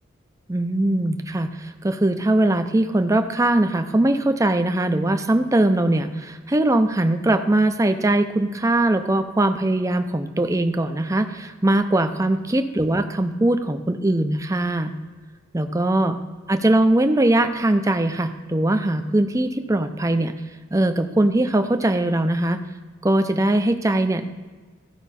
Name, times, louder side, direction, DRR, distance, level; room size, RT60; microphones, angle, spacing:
voice 1, 0.5-14.9 15.5-16.2 16.5-20.3 20.7-22.6 23.0-24.2, right 1 dB, 15° right, 7 dB, 0.5 m, -21 dB
14.0 x 5.7 x 4.2 m, 1.4 s
head